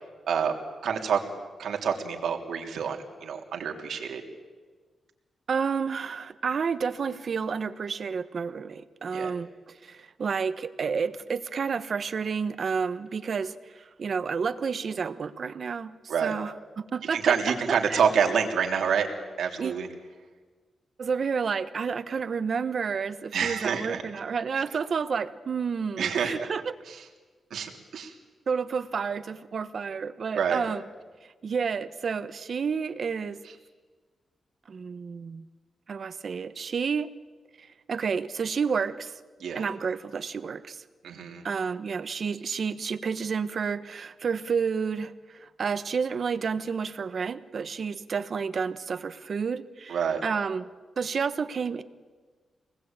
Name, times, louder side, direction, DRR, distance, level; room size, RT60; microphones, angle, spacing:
voice 1, 0.8-1.2 1.6-4.2 9.1-9.3 16.1-16.4 17.1-19.1 19.4-19.9 23.3-24.0 24.5-24.6 26.0-26.5 26.9-27.0 27.5-28.1 30.4-30.6 39.4-39.6 41.0-41.4 49.9-50.2, right 7 dB, 85° right, 2 dB, 3.3 m, -27 dB
voice 2, 5.5-9.5 9.8-18.0 19.6-19.7 21.0-26.7 28.5-30.8 31.2-33.4 34.7-35.4 35.9-37.1 37.6-39.2 39.5-40.8 41.4-50.7 51.0-51.8, right 6 dB, 50° right, 12 dB, 1.1 m, -30 dB
26.0 x 20.0 x 8.9 m, 1.4 s
wide cardioid pair, 145°, 0 cm